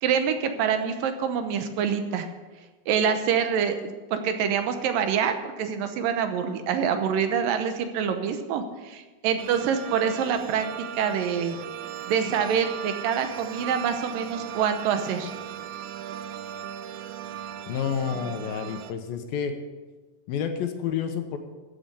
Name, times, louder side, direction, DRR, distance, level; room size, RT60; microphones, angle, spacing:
voice 1, 0.0-2.3 2.9-10.7 11.0-11.6 12.1-15.3, right 7 dB, 70° right, 7 dB, 2.4 m, -26 dB
sound 1, 9.4-18.9, right 10 dB, 90° right, 1.7 m, -38 dB
voice 2, 17.7-19.5 20.3-21.4, left 7 dB, 75° left, 6 dB, 2.7 m, -29 dB
14.5 x 7.7 x 6.8 m, 1.3 s
omnidirectional pair, 4.5 m